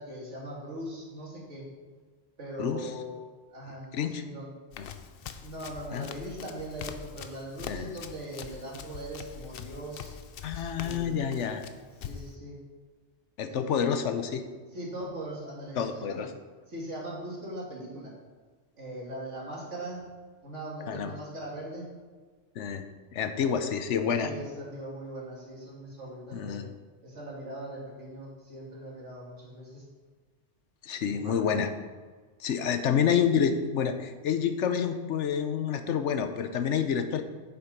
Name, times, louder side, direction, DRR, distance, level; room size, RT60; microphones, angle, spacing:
voice 1, 0.0-1.6 1.9-2.0 2.4-3.2 3.5-4.5 5.4-10.1 10.7-11.3 12.0-12.6 13.4-14.0 14.7-16.3 16.7-18.1 18.8-20.0 20.4-21.9 24.2-26.6 27.0-29.9 31.0-31.5, right 1 dB, 80° right, -3 dB, 2.6 m, -40 dB
Run, 4.7-12.4, left 7 dB, 60° left, 0.7 m, -43 dB
voice 2, 10.4-11.6 13.4-14.4 15.8-16.3 20.9-21.1 22.6-24.3 26.3-26.6 30.8-31.7 32.4-37.2, left 7 dB, 80° left, 8 dB, 1.0 m, -28 dB
7.4 x 7.2 x 5.1 m, 1.4 s
omnidirectional pair, 1.2 m